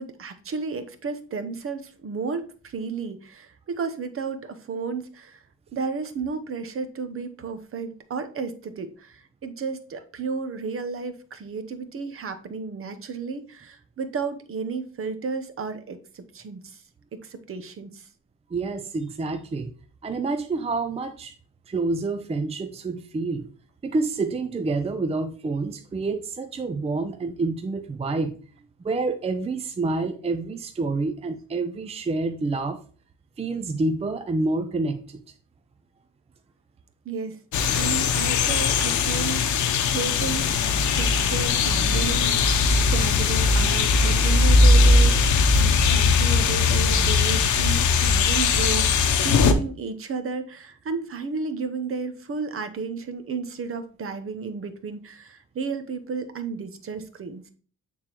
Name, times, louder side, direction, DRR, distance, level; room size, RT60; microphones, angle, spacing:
voice 1, 0.0-5.4 5.7-16.8 17.1-18.1 37.0-37.4 37.7-40.6 41.0-57.5, right 4 dB, 45° right, 10 dB, 0.9 m, -33 dB
voice 2, 18.5-19.7 20.0-21.4 21.7-23.5 23.8-28.4 28.8-32.8 33.4-35.2, right 3 dB, 20° right, 8 dB, 0.5 m, -28 dB
sound 1, 37.5-49.5, left 4 dB, 75° left, 0.8 m, -20 dB
8.6 x 3.7 x 3.0 m, 0.40 s
cardioid pair, 90°, 30 cm